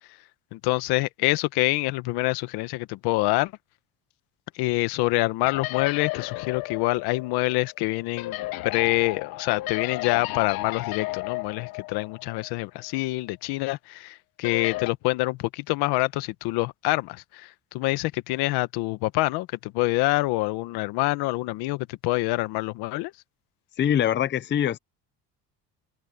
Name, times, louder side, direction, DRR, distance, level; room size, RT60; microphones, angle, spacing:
voice 1, 0.5-3.5 4.5-8.4 8.6-23.1, left 20 dB, 85° left, 1.3 m, -26 dB
sound 1, 5.4-12.5 12.8-12.9 14.4-14.9, left 18 dB, 65° left, 0.9 m, -33 dB
voice 2, 23.8-24.8, left 10 dB, 30° left, 0.6 m, -23 dB
cardioid pair, 135°, 38 cm